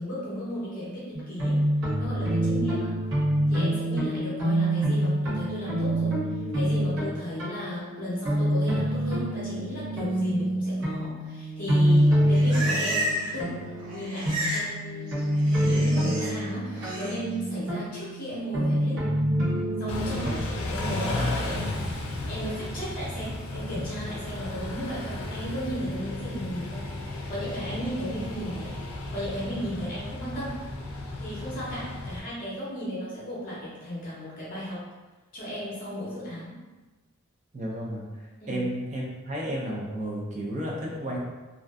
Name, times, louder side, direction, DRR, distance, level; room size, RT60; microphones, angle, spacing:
voice 1, 0.0-1.6 2.0-2.9 3.5-13.6 13.9-19.1 19.8-28.7 29.1-30.6 31.2-34.8 35.3-36.6 38.4-38.6, equal, 40° left, -7 dB, 0.6 m, -35 dB
sound 1, 1.1-20.4, equal, 60° right, 0.9 m, -26 dB
Livestock farm animals working animals, 12.0-13.4 13.6-14.7 15.0-16.3 16.7-17.1, right 1 dB, 85° right, 0.9 m, -32 dB
Car / Idling / Accelerating revving vroom, 19.9-32.2, left 2 dB, 80° left, 0.4 m, -34 dB
voice 2, 20.0-20.4 27.7-27.8 37.5-38.1 38.5-41.2, right 1 dB, 35° right, -3 dB, 0.5 m, -32 dB
2.5 x 2.4 x 2.3 m, 1.2 s
head